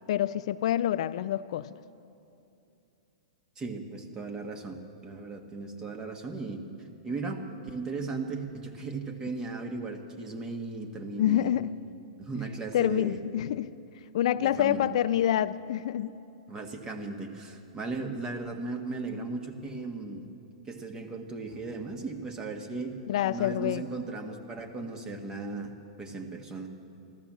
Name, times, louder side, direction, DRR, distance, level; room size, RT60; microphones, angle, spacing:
voice 1, 0.1-1.7 11.2-11.8 12.7-13.8 14.1-16.2 23.1-23.9, left 11 dB, 60° left, 0.4 m, -27 dB
voice 2, 3.6-6.6 7.0-11.6 12.2-13.2 14.4-14.9 16.5-20.3 20.6-22.9 23.2-25.7 26.0-26.7, right 3 dB, 20° right, 1.4 m, -36 dB
15.0 x 12.5 x 7.3 m
hypercardioid pair, 130°, 4 cm